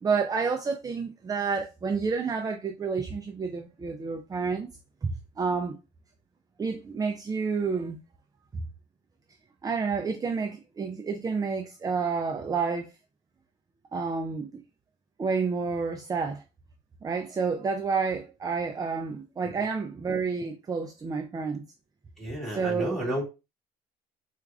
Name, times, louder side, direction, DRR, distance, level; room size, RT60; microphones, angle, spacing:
voice 1, 0.0-4.7 5.0-5.8 6.6-8.0 8.5-8.6 9.6-12.9 13.9-14.6 15.2-16.4 17.0-21.6 22.5-23.0, right 5 dB, 20° right, 0.4 m, -29 dB
voice 2, 22.2-23.2, right 1 dB, ahead, 2.0 m, -32 dB
4.4 x 2.4 x 2.4 m
cardioid pair, 110°, 17 cm